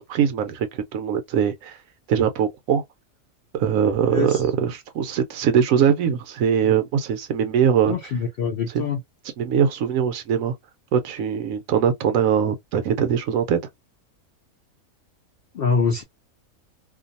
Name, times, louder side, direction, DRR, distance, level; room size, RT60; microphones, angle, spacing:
voice 1, 0.0-1.8 2.1-2.8 3.5-7.9 8.7-8.9 9.4-10.5 10.9-13.6, right 8 dB, 70° right, 0.9 m, -22 dB
voice 2, 7.9-9.0 15.5-16.0, left 5 dB, 70° left, 0.5 m, -24 dB
2.5 x 2.2 x 2.6 m
omnidirectional pair, 1.6 m